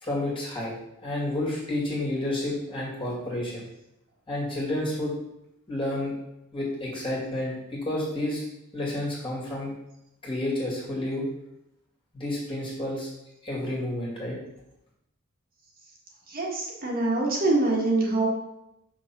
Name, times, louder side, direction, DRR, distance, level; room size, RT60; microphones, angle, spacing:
voice 1, 0.0-3.7 4.3-5.1 5.7-6.2 6.5-8.4 8.7-9.7 10.2-11.3 12.1-13.1 13.4-14.4, left 1 dB, 25° left, -5 dB, 2.2 m, -30 dB
voice 2, 16.3-18.3, right 2 dB, 45° right, -3 dB, 1.5 m, -24 dB
5.9 x 3.8 x 6.0 m, 0.85 s
head